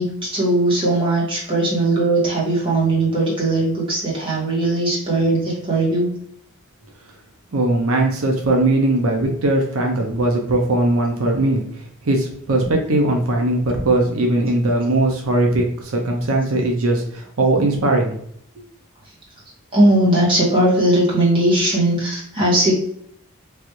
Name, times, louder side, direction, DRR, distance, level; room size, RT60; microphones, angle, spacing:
voice 1, 0.0-6.1 19.7-22.7, right 1 dB, 25° right, -5 dB, 1.3 m, -18 dB
voice 2, 7.5-18.1, right 2 dB, 80° right, 1 dB, 0.6 m, -19 dB
3.4 x 2.5 x 2.9 m, 0.68 s
head